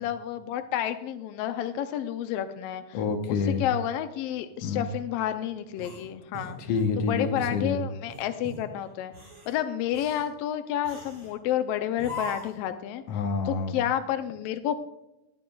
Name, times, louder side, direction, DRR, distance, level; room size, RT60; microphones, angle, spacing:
voice 1, 0.0-3.0 3.3-6.6 7.0-9.1 9.5-13.0 13.4-14.8, left 11 dB, 85° left, 9 dB, 1.4 m, -30 dB
voice 2, 2.9-3.7 4.6-4.9 6.6-7.8 13.1-13.8, left 4 dB, 65° left, 6 dB, 1.9 m, -28 dB
sound 1, 5.8-6.9 7.4-7.6 8.1-8.6 9.1-9.6 9.9-10.3 10.8-11.3 12.0-12.6, left 1 dB, 45° right, 4.6 m, -40 dB
20.0 x 9.0 x 2.3 m, 0.94 s
omnidirectional pair, 3.3 m